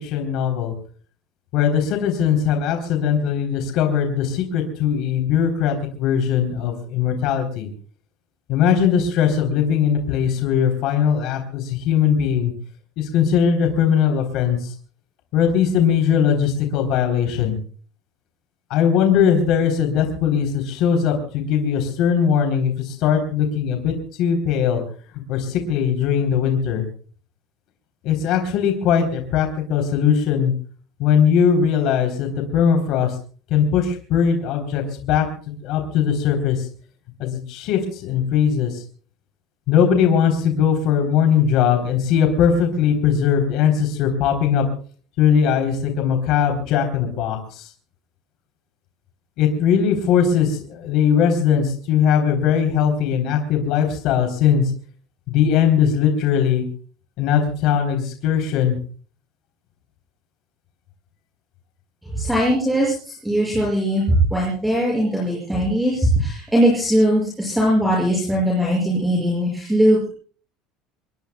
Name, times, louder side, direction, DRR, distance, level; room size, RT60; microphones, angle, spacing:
voice 1, 0.0-0.7 1.5-7.7 8.5-12.5 13.0-14.6 15.3-17.6 18.7-24.8 25.3-26.8 28.0-30.5 31.0-33.1 33.5-36.6 37.2-38.7 39.7-44.6 45.2-47.7 49.4-54.6 55.3-56.6 57.2-58.8, left 7 dB, 55° left, 4 dB, 3.6 m, -20 dB
voice 2, 62.1-70.1, equal, 5° right, -3 dB, 6.2 m, -20 dB
26.0 x 21.5 x 2.3 m, 0.42 s
cardioid pair, 170°, 0 cm